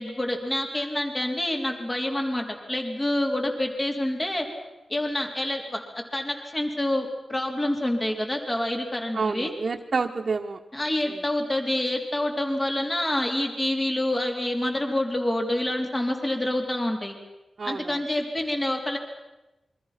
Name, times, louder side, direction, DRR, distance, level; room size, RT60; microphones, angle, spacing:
voice 1, 0.0-4.5 4.9-5.8 6.1-9.5 10.7-17.2 17.6-19.0, left 1 dB, 20° left, 3 dB, 3.7 m, -27 dB
voice 2, 9.1-10.6 11.0-11.2 17.6-18.0, right 4 dB, 50° right, -1 dB, 1.4 m, -29 dB
28.5 x 23.5 x 6.0 m, 1.0 s
wide cardioid pair, 115°, 0 cm